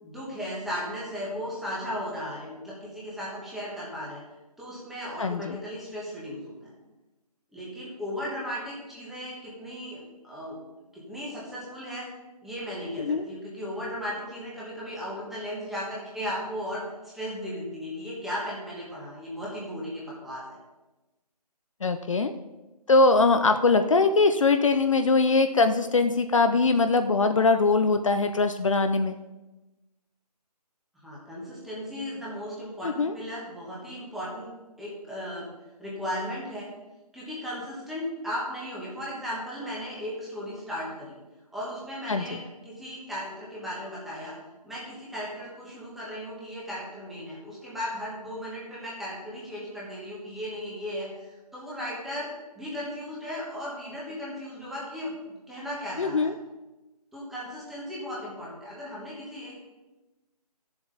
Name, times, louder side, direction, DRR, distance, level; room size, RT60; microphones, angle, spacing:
voice 1, 0.0-4.2 4.6-6.7 7.5-10.6 10.9-12.1 12.4-20.6 31.0-34.5 34.8-35.5 35.8-36.7 37.1-41.2 41.5-44.4 44.6-56.3 57.1-59.6, equal, ahead, -6 dB, 1.2 m, -36 dB
voice 2, 5.2-5.6 13.0-13.2 21.8-22.3 22.9-29.1 32.8-33.1 42.1-42.4 56.0-56.3, left 3 dB, 50° left, 8 dB, 0.6 m, -22 dB
13.5 x 7.0 x 3.9 m, 1.1 s
figure-of-eight pair, 165°, 21 cm